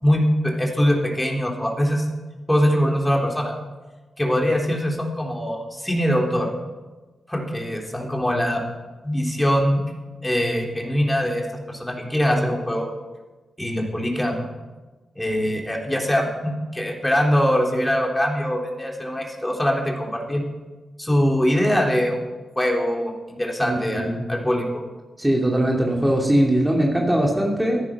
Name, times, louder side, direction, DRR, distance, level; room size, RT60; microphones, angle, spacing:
voice 1, 0.0-2.0 2.5-3.5 4.2-6.5 7.3-8.6 9.0-9.8 10.2-12.9 13.6-14.5 15.2-20.4 21.0-22.2 22.6-24.7, equal, 15° left, 1 dB, 3.7 m, -22 dB
voice 2, 25.2-27.8, right 1 dB, 15° right, -1 dB, 2.9 m, -20 dB
14.5 x 10.0 x 6.1 m, 1.2 s
supercardioid pair, 40°, 0 cm